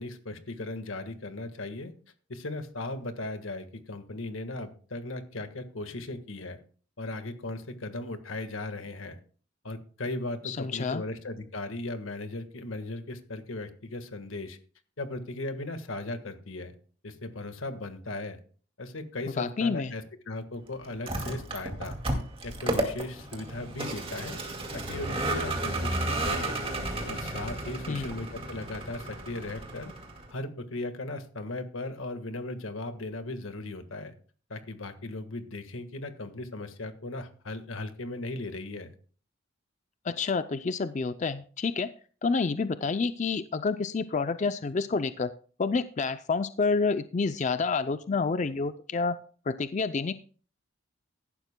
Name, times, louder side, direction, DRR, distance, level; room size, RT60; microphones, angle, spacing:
voice 1, 0.0-1.9 2.3-6.6 7.0-9.2 9.6-14.6 15.0-16.7 17.0-18.4 18.8-22.0 22.4-24.4 24.7-26.6 27.1-29.9 30.3-34.1 34.5-38.9, left 2 dB, 90° left, 8 dB, 1.5 m, -37 dB
voice 2, 10.4-11.0 19.4-19.9 27.9-28.1 40.0-41.9 42.2-45.3 45.6-49.2 49.5-50.1, left 4 dB, 35° left, 12 dB, 0.4 m, -28 dB
Vehicle, 20.9-30.3, right 1 dB, 30° right, 2.2 m, -33 dB
16.0 x 11.5 x 2.2 m, 0.41 s
head